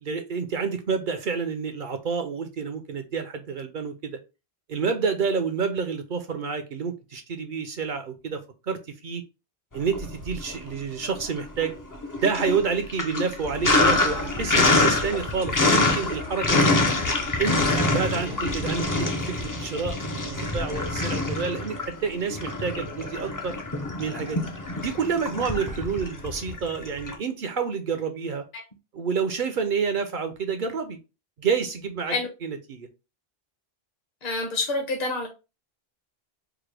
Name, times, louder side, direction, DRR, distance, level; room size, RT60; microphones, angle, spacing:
voice 1, 0.0-4.2 4.7-8.4 8.7-9.2 9.7-11.7 12.2-16.8 17.4-19.1 19.4-23.5 24.0-24.5 24.8-28.4 28.9-31.0 31.4-32.9, right 5 dB, 60° right, 0.7 m, -29 dB
Sink (filling or washing), 9.8-10.7 11.0-27.1, left 2 dB, 25° left, 0.4 m, -25 dB
sound 1, 13.4-19.1, equal, 65° left, 2.7 m, -39 dB
voice 2, 34.2-35.3, left 3 dB, 45° left, 0.9 m, -27 dB
4.7 x 2.1 x 3.2 m
omnidirectional pair, 1.0 m